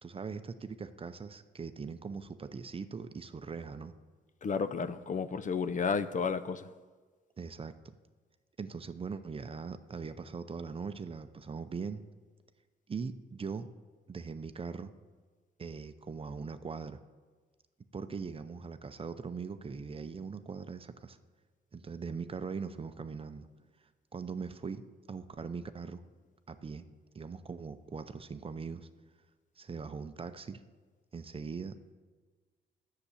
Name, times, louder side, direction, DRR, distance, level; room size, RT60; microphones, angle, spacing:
voice 1, 0.0-3.9 7.4-8.0 8.6-12.0 12.9-13.7 14.1-14.9 15.6-17.0 17.9-21.2 21.7-23.5 24.1-26.0 26.5-26.8 27.1-28.9 29.6-30.6 31.1-31.9, right 5 dB, 30° right, 0.6 m, -41 dB
voice 2, 4.4-6.7, left 5 dB, 40° left, 0.6 m, -32 dB
10.0 x 6.8 x 8.3 m
cardioid pair, 90°, 20 cm